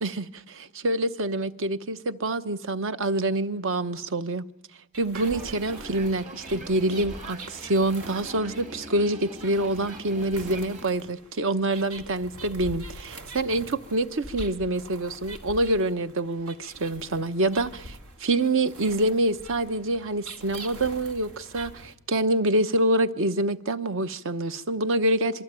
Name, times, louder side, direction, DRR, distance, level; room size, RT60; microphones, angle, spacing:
voice 1, 0.0-4.4 5.0-17.8 18.2-25.4, right 1 dB, 65° right, 1.0 m, -26 dB
sound 1, 4.9-21.9, right 2 dB, 85° right, 1.9 m, -44 dB
sound 2, 5.1-10.9, right 1 dB, 35° right, 2.3 m, -43 dB
26.5 x 23.5 x 9.1 m
head